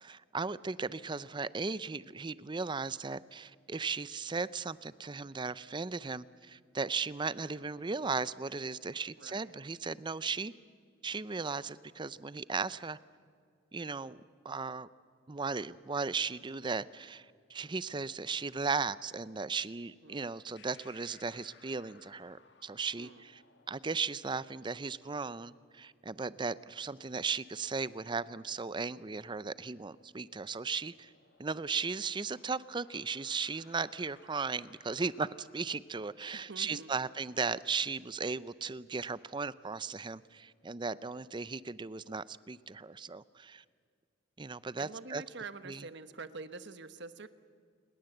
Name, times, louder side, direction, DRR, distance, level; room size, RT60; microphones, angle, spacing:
voice 1, 0.0-10.5 11.0-13.0 13.7-14.9 15.3-23.4 23.7-31.1 31.4-43.6 44.4-45.2 45.7-45.8, right 4 dB, 25° right, 17 dB, 0.5 m, -36 dB
voice 2, 9.2-9.6 20.0-20.4 23.0-23.2 36.3-37.0 44.8-47.3, right 4 dB, 65° right, 11 dB, 1.2 m, -46 dB
sound 1, 20.5-35.6, left 5 dB, 65° left, 2.1 m, -64 dB
28.5 x 20.5 x 7.9 m, 2.1 s
head